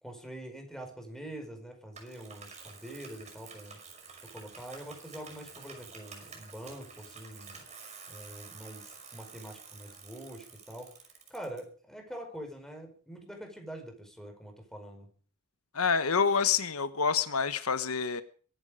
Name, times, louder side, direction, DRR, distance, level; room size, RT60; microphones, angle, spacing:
voice 1, 0.0-3.8 4.2-7.7 8.1-10.9 11.3-15.1, right 1 dB, ahead, 4 dB, 5.1 m, -45 dB
Bicycle, 1.9-11.6, right 5 dB, 35° right, 5.7 m, -50 dB
voice 2, 15.7-18.2, left 6 dB, 80° left, 12 dB, 1.1 m, -27 dB
23.0 x 11.0 x 5.1 m, 0.42 s
head